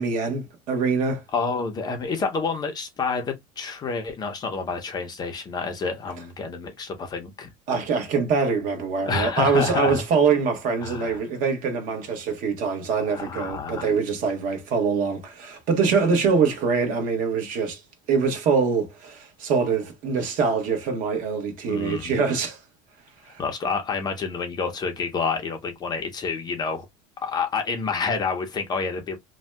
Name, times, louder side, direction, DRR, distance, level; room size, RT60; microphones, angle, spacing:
voice 1, 0.0-1.2 7.7-17.8 18.1-22.6 23.3-23.4, right 5 dB, 50° right, 1.0 m, -24 dB
voice 2, 1.3-7.5 9.0-10.0 10.8-11.2 13.0-13.9 21.7-22.1 23.4-26.9 27.2-29.2, left 4 dB, 20° left, 0.5 m, -28 dB
2.6 x 2.2 x 3.2 m
cardioid pair, 155°, 18 cm